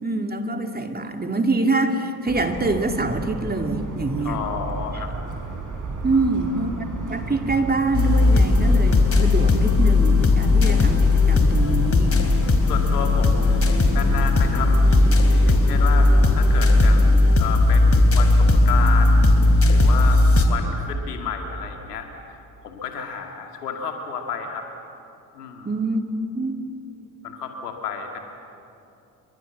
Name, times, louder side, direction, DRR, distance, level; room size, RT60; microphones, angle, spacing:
voice 1, 0.0-4.4 4.9-5.0 6.0-12.2 25.6-26.0 26.3-26.6, right 3 dB, 20° right, 5 dB, 2.6 m, -25 dB
Motor vehicle (road) / Siren, 2.3-16.8, right 3 dB, 40° right, 5.5 m, -33 dB
voice 2, 4.2-5.1 12.7-16.1 16.3-19.3 19.7-20.2 20.5-22.1 22.6-24.7 25.3-25.7 27.2-28.2, left 6 dB, 85° left, 4 dB, 2.3 m, -31 dB
sound 1, 7.9-20.4, left 2 dB, 30° left, 3.7 m, -17 dB
27.5 x 24.0 x 7.3 m, 2.8 s
hypercardioid pair, 50°, 46 cm